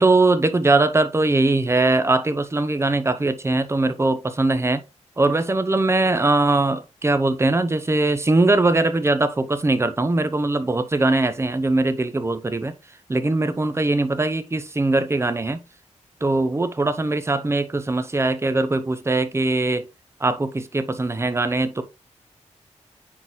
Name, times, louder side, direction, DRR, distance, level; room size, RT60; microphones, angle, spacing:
voice 1, 0.0-4.8 5.2-12.7 13.1-15.6 16.2-19.9 20.2-21.8, right 2 dB, 20° right, 0.8 m, -21 dB
9.7 x 4.0 x 3.0 m
wide cardioid pair, 135°, 12 cm